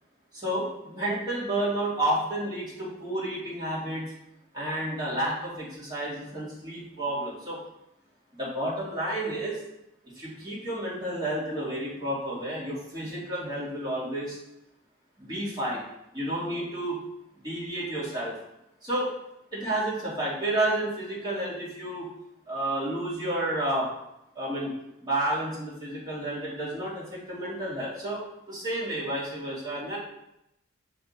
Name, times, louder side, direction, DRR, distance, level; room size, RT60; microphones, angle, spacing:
voice 1, 0.3-4.1 4.5-7.6 8.4-9.6 10.1-14.4 15.2-15.8 16.1-17.0 17.4-18.3 18.8-19.2 19.5-22.1 22.5-23.9 24.3-24.7 25.0-28.2 28.5-30.0, right 1 dB, 20° right, -9 dB, 2.3 m, -30 dB
7.0 x 3.5 x 4.1 m, 0.84 s
head